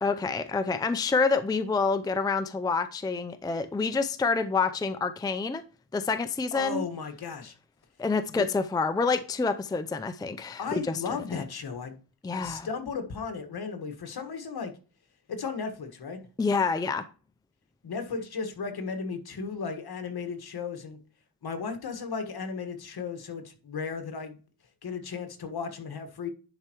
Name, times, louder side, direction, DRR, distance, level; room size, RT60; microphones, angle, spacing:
voice 1, 0.0-5.6 5.9-6.8 8.0-11.4 12.2-12.7 16.4-17.0, left 4 dB, 10° left, 0.4 m, -27 dB
voice 2, 6.5-7.5 8.3-8.5 10.6-12.0 12.3-14.7 15.3-16.2 17.8-21.0 21.4-24.4 24.8-26.3, left 5 dB, 65° left, 1.5 m, -35 dB
10.5 x 4.5 x 3.0 m
cardioid pair, 90°, 40 cm